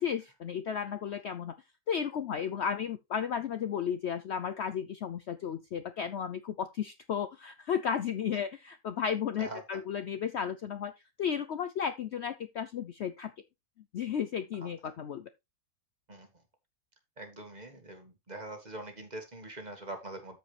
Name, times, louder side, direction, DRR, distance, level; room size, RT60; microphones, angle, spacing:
voice 1, 0.0-1.5 1.9-10.9 11.2-13.3 13.9-15.3, left 8 dB, 60° left, 0.7 m, -34 dB
voice 2, 17.2-20.4, right 2 dB, 30° right, 1.8 m, -43 dB
13.5 x 4.9 x 3.3 m
omnidirectional pair, 1.6 m